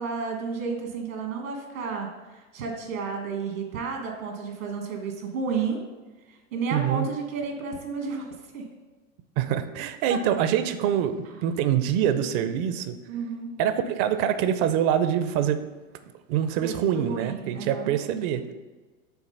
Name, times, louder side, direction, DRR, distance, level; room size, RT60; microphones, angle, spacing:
voice 1, 0.0-5.8 6.3-8.3 8.5-8.6 10.1-10.2 13.1-13.5 16.6-17.9, right 5 dB, 85° right, 3 dB, 1.6 m, -32 dB
voice 2, 6.7-7.1 9.4-13.0 13.6-15.6 16.3-18.4, right 9 dB, 45° right, 11 dB, 0.6 m, -25 dB
5.9 x 3.7 x 5.4 m, 1.3 s
hypercardioid pair, 115°, 39 cm